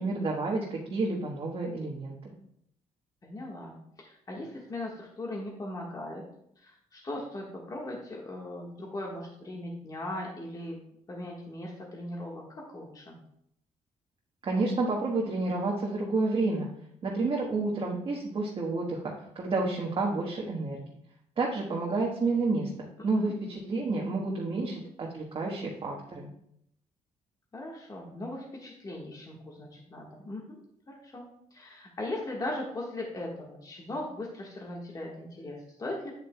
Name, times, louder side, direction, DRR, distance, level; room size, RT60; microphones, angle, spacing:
voice 1, 0.0-2.3 14.4-16.7 17.0-19.0 19.3-20.8 21.4-22.7 23.0-26.3, right 3 dB, 45° right, -2 dB, 1.3 m, -30 dB
voice 2, 3.2-6.2 6.6-10.8 11.1-13.2 23.0-23.3 27.5-30.6 31.0-31.2 31.5-36.1, left 1 dB, 30° left, -2 dB, 1.5 m, -39 dB
8.9 x 7.9 x 2.2 m, 0.73 s
cardioid pair, 100°, 13 cm